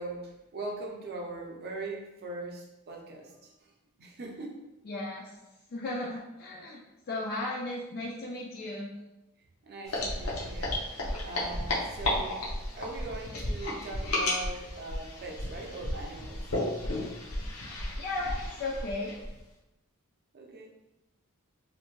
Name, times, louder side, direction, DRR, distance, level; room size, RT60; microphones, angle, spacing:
voice 1, 0.0-3.7 4.0-4.6 9.6-10.8 11.2-16.5 20.3-20.7, right 2 dB, 50° right, 0 dB, 0.5 m, -41 dB
voice 2, 4.8-5.3 5.7-6.8 7.1-8.9 18.0-19.2, left 2 dB, 45° left, -4 dB, 0.3 m, -35 dB
sound 1, 9.9-19.4, left 1 dB, 75° left, 0.7 m, -33 dB
2.6 x 2.1 x 3.0 m, 0.97 s
head